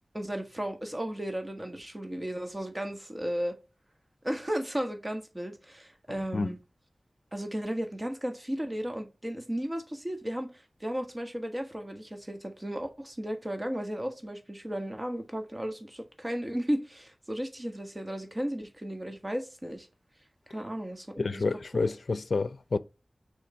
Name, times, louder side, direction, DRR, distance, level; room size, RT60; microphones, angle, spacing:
voice 1, 0.1-3.6 4.2-6.6 7.3-19.9 20.5-21.5, equal, 25° right, 1.5 m, -34 dB
voice 2, 21.2-22.8, left 3 dB, 75° left, 0.4 m, -29 dB
6.6 x 3.6 x 4.4 m
wide cardioid pair, 60°, 0 cm